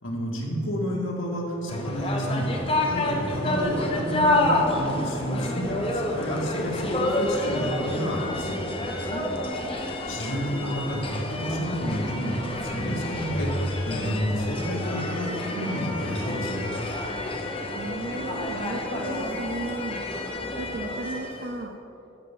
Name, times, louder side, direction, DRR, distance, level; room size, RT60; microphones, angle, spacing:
voice 1, 0.0-8.6 10.1-13.5 13.8-16.6, equal, 90° left, -3 dB, 2.0 m, -30 dB
sound 1, 1.7-21.5, left 1 dB, 25° left, 0.8 m, -29 dB
voice 2, 17.7-20.0 20.6-21.7, right 2 dB, 50° right, 3 dB, 0.5 m, -34 dB
13.0 x 7.7 x 3.8 m, 3.0 s
head